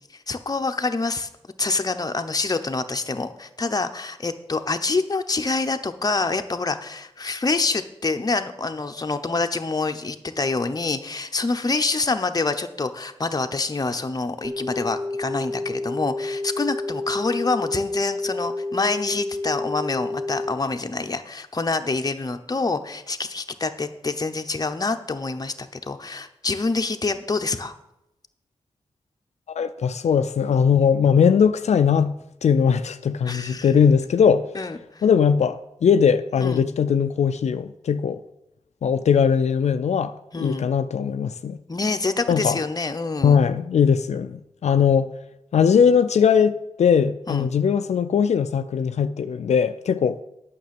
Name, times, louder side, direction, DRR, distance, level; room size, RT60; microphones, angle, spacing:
voice 1, 0.3-1.3 1.6-27.7 33.2-33.7 34.5-35.0 36.4-36.7 40.3-40.6 41.7-43.4 47.3-47.5, left 3 dB, 35° left, 0.9 m, -26 dB
sound 1, 14.4-20.5, left 2 dB, 35° right, 1.2 m, -29 dB
voice 2, 29.6-32.1 32.4-34.4 35.0-38.2 38.8-41.6 42.3-42.6 43.2-45.1 45.5-50.2, left 7 dB, 85° left, 0.4 m, -20 dB
9.2 x 6.1 x 7.6 m
wide cardioid pair, 70°, 11 cm